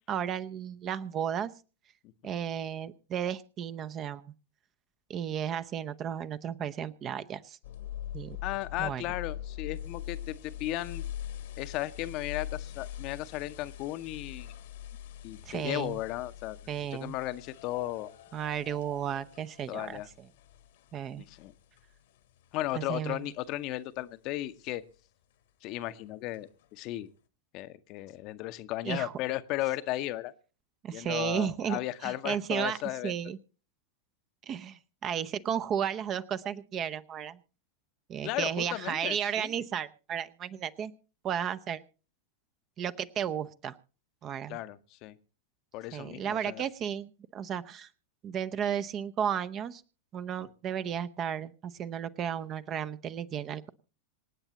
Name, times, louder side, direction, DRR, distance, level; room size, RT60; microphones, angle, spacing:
voice 1, 0.1-1.5 2.2-4.3 5.1-7.6 8.1-8.4 8.8-9.0 15.5-16.0 16.7-17.2 18.3-20.0 20.9-21.2 22.7-23.2 28.8-29.1 30.8-32.8 33.0-33.4 34.5-37.4 38.1-40.9 41.2-41.8 42.8-43.8 44.2-44.6 45.9-47.9 48.2-49.8 50.1-53.7, right 9 dB, 30° right, 13 dB, 0.7 m, -33 dB
sound 1, 7.6-22.5 23.0-23.1 23.7-23.8 26.3-26.4, left 11 dB, 55° left, 1.2 m, -43 dB
voice 2, 8.4-11.0 11.6-14.5 15.2-16.6 16.9-18.1 19.7-20.1 21.2-21.5 22.5-24.8 25.6-27.1 27.5-30.3 30.9-33.1 38.2-39.5 44.5-45.2 45.7-46.6, left 16 dB, 40° left, 11 dB, 0.8 m, -35 dB
26.5 x 8.9 x 2.9 m, 0.36 s
figure-of-eight pair, 90°, 0 cm